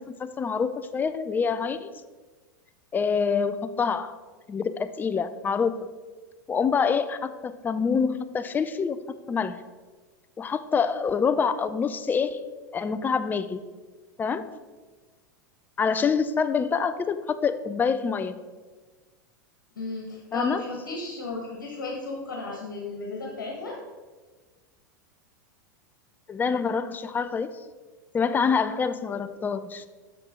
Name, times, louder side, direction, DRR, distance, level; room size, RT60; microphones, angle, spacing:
voice 1, 0.0-1.9 2.9-4.1 4.5-5.7 6.5-9.0 9.3-9.6 10.4-12.4 12.7-13.6 14.2-14.5 15.8-18.4 20.3-20.6 26.3-27.5 28.1-29.9, left 6 dB, 20° left, 11 dB, 0.4 m, -26 dB
voice 2, 19.8-23.8, left 3 dB, 80° left, -1 dB, 1.3 m, -34 dB
7.0 x 5.6 x 3.6 m, 1.3 s
hypercardioid pair, 95°, 10 cm